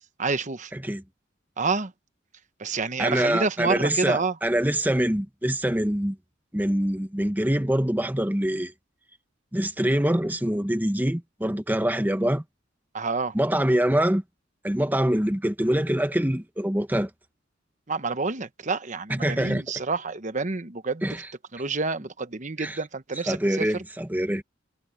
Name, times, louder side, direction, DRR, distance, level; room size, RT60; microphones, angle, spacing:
voice 1, 0.2-0.7 1.6-1.9 2.6-4.4 12.9-13.3 17.9-21.1 21.5-23.8, right 4 dB, 40° right, 1.0 m, -28 dB
voice 2, 0.7-1.0 3.0-6.2 6.5-8.7 9.5-12.4 13.3-14.2 14.6-17.1 19.1-19.6 21.0-21.2 22.6-22.8 23.3-24.4, right 1 dB, 10° right, 1.2 m, -24 dB
head